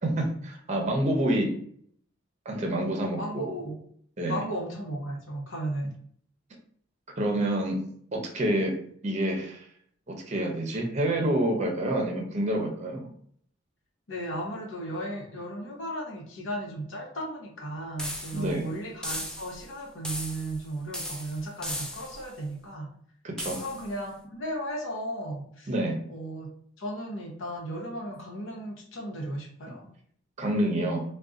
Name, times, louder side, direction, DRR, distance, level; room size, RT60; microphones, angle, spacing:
voice 1, 0.0-1.5 2.5-3.4 4.2-4.4 7.2-7.8 8.1-8.8 9.0-9.7 10.1-13.1 18.3-18.7 23.2-23.6 25.7-26.0 30.4-31.0, right 1 dB, 35° right, 2 dB, 0.6 m, -27 dB
voice 2, 3.2-3.8 4.3-5.9 14.1-22.9 23.6-25.7 26.1-26.5 26.8-29.9, right 1 dB, 90° left, 0 dB, 0.8 m, -35 dB
sound 1, 18.0-18.6 19.0-19.7 20.0-20.6 20.9-22.3 23.4-23.9, equal, 5° left, 0.3 m, -36 dB
3.8 x 2.2 x 2.4 m, 0.62 s
head